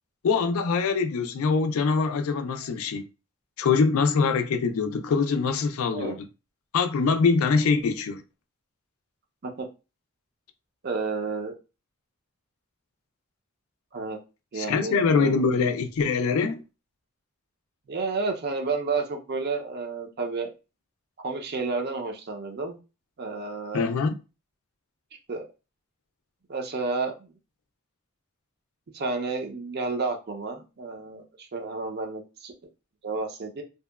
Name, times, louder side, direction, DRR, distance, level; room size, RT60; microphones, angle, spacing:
voice 1, 0.2-3.0 3.6-6.3 6.7-8.2 14.6-16.6 23.7-24.2, left 5 dB, 75° left, 0.3 m, -24 dB
voice 2, 10.8-11.5 13.9-14.2 14.5-15.4 17.9-20.5 21.2-22.8 23.2-23.8 25.3-25.5 26.5-27.3 28.9-32.5 33.0-33.6, right 4 dB, 50° right, 0.5 m, -31 dB
2.7 x 2.1 x 2.2 m
head